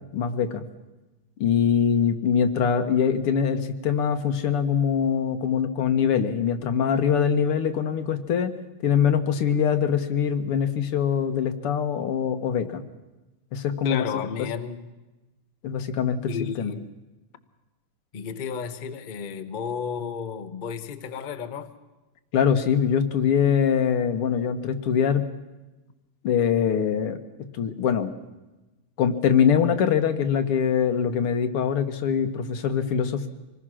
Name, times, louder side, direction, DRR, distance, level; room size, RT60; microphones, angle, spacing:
voice 1, 0.1-0.6 1.4-8.5 8.8-12.8 13.5-14.0 14.4-14.5 15.6-16.7 22.3-25.3 26.2-27.2 27.5-28.1 29.0-33.3, left 7 dB, 90° left, 2.2 m, -23 dB
voice 2, 13.8-15.0 16.3-16.9 18.1-21.7, left 6 dB, 40° left, 0.7 m, -32 dB
26.0 x 19.5 x 6.3 m
omnidirectional pair, 2.4 m